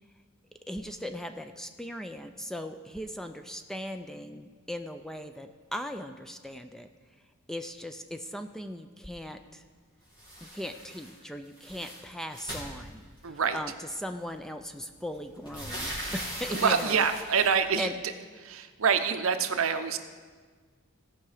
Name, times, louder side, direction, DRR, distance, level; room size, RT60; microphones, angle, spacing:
voice 1, 0.7-6.9 7.5-9.6 10.4-17.1 17.8-17.9, equal, ahead, 7 dB, 0.4 m, -38 dB
sound 1, 10.1-11.2 11.4-13.4 14.4-14.5 14.8-17.6, equal, 20° left, 3.1 m, -40 dB
voice 2, 13.2-13.6 16.5-17.9 18.4-20.0, right 6 dB, 65° right, 9 dB, 0.7 m, -26 dB
17.0 x 5.8 x 4.9 m, 1.5 s
head